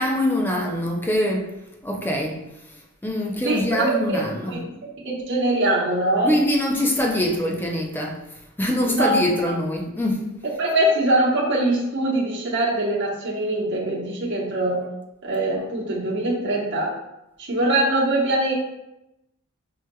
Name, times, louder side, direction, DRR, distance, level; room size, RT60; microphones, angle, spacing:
voice 1, 0.0-1.5 1.8-2.4 3.0-4.6 6.3-8.2 8.6-10.3, left 1 dB, 10° left, 0 dB, 0.5 m, -23 dB
voice 2, 3.4-4.2 4.5-4.6 5.0-6.4 8.8-9.2 10.6-14.8 15.2-16.9 17.4-18.5, right 1 dB, 60° right, -3 dB, 1.0 m, -22 dB
6.0 x 3.0 x 2.2 m, 0.91 s
head